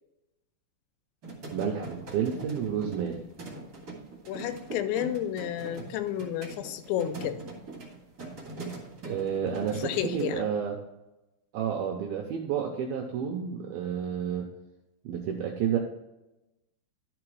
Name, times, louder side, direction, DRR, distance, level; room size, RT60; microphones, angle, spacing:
sound 1, 1.2-10.3, right 3 dB, 35° right, 1.8 m, -42 dB
voice 1, 1.5-3.2 9.0-10.7 11.5-14.5 15.1-15.8, right 8 dB, 85° right, 2 dB, 2.2 m, -30 dB
voice 2, 4.3-7.4 9.8-10.5, left 11 dB, 80° left, 10 dB, 2.8 m, -31 dB
11.5 x 5.0 x 4.7 m, 0.98 s
omnidirectional pair, 5.3 m